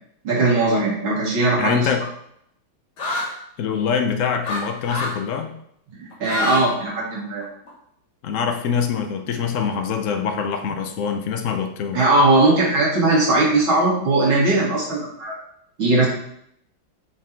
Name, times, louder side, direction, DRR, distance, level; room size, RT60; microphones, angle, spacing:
voice 1, 0.2-1.9 5.9-7.5 11.9-15.4 15.8-16.1, right 2 dB, 85° right, -5 dB, 3.0 m, -19 dB
voice 2, 1.6-2.0 3.6-5.5 8.2-12.1, left 6 dB, 70° left, 6 dB, 0.7 m, -24 dB
sound 1, 3.0-3.3 4.4-4.6 4.9-5.2 6.1-6.6 6.9-7.7, left 2 dB, 90° left, 2.4 m, -26 dB
7.0 x 4.1 x 4.5 m, 0.72 s
omnidirectional pair, 2.2 m